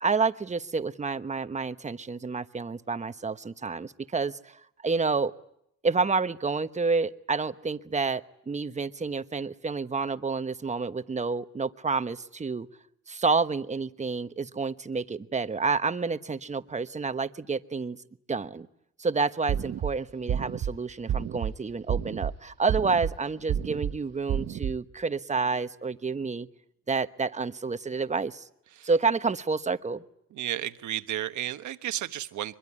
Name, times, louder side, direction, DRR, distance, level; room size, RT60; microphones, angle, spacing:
voice 1, 0.0-5.3 5.8-12.7 13.1-18.0 18.3-18.7 19.0-26.5 26.9-28.5 28.8-30.0, right 4 dB, 25° right, 12 dB, 1.1 m, -29 dB
sound 1, 19.5-19.9 20.3-20.7 21.1-21.5 21.9-22.3 22.7-23.1 23.5-23.9 24.3-24.7, right 9 dB, 55° right, 1.0 m, -29 dB
voice 2, 30.3-32.5, right 12 dB, 75° right, 11 dB, 1.3 m, -33 dB
24.0 x 22.0 x 9.9 m, 0.76 s
cardioid pair, 90°, 30 cm